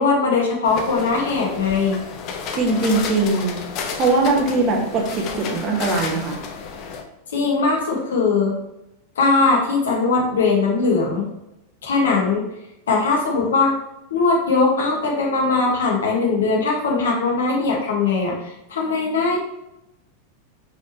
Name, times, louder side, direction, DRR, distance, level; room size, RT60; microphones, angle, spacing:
voice 1, 0.0-2.0 7.3-8.5 9.2-11.2 11.8-12.4 12.9-13.7 14.1-18.3 18.7-19.4, left 4 dB, 65° left, -1 dB, 1.7 m, -20 dB
sound 1, 0.6-7.0, left 5 dB, 40° left, 0.9 m, -31 dB
voice 2, 2.5-3.6 4.0-6.4, right 3 dB, 30° right, 0 dB, 1.5 m, -20 dB
6.4 x 5.8 x 3.1 m, 0.88 s
figure-of-eight pair, 90°, 0 cm